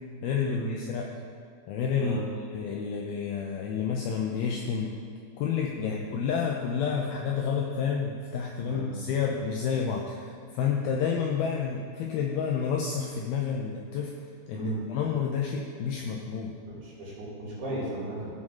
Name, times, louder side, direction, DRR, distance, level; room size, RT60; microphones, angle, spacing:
voice 1, 0.2-1.1 1.7-2.2 2.5-4.9 5.4-14.1 14.5-16.6, left 6 dB, 80° left, 0 dB, 2.2 m, -30 dB
voice 2, 16.8-18.3, right 1 dB, 65° right, -7 dB, 4.4 m, -35 dB
15.0 x 6.3 x 3.8 m, 2.5 s
omnidirectional pair, 5.0 m